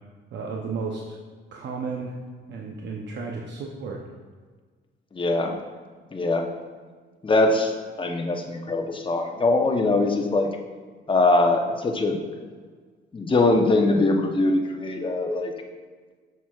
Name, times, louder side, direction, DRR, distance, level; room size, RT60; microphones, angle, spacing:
voice 1, 0.3-1.2 1.5-2.2 2.5-4.1, right 4 dB, 60° right, -1 dB, 0.7 m, -33 dB
voice 2, 5.2-5.6 6.1-6.5 7.2-7.7 8.0-10.5 11.1-12.2 13.1-15.5, left 2 dB, 25° left, 3 dB, 0.8 m, -22 dB
7.2 x 5.9 x 2.4 m, 1.5 s
cardioid pair, 90°, 20 cm